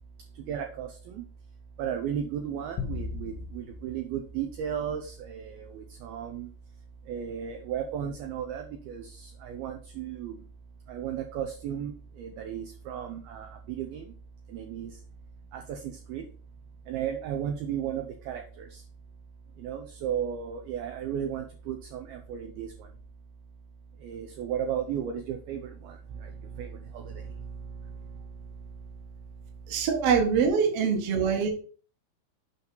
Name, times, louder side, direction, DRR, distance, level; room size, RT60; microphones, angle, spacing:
voice 1, 0.5-0.9 1.1-1.2 1.8-6.5 7.1-9.0 9.4-10.3 10.9-11.9 12.2-14.0 14.5-14.9 15.5-15.8 16.1-16.2 16.9-18.4 19.6-22.7 24.0-25.7 26.6-26.7 26.9-27.1, right 9 dB, 85° right, 4 dB, 2.2 m, -34 dB
sound 1, 2.8-5.4, left 4 dB, 85° left, 3.2 m, -39 dB
voice 2, 29.7-31.5, right 6 dB, 60° right, 2 dB, 1.6 m, -24 dB
8.3 x 5.4 x 3.9 m, 0.41 s
omnidirectional pair, 5.3 m